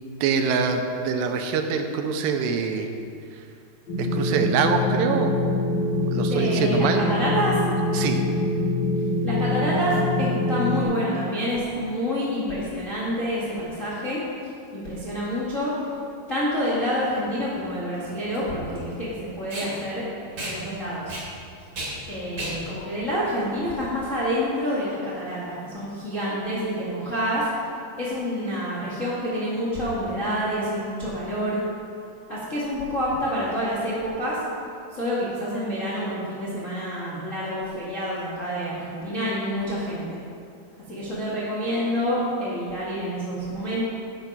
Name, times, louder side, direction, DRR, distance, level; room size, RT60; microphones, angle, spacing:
voice 1, 0.2-2.9 4.0-5.3 6.0-7.0 7.9-8.2, right 6 dB, 90° right, 5 dB, 2.9 m, -24 dB
sound 1, 3.9-10.8, left 2 dB, 30° left, 3.2 m, -24 dB
voice 2, 6.3-7.6 9.2-14.2 14.7-15.7 16.3-20.0 20.4-21.2 22.1-27.5 28.0-31.6 32.3-34.4 34.9-40.2 40.9-43.8, equal, 75° left, -8 dB, 0.7 m, -28 dB
Packing tape duct tape, 16.7-24.2, right 1 dB, 35° right, 3.5 m, -37 dB
9.1 x 8.7 x 5.4 m, 2.4 s
omnidirectional pair, 4.8 m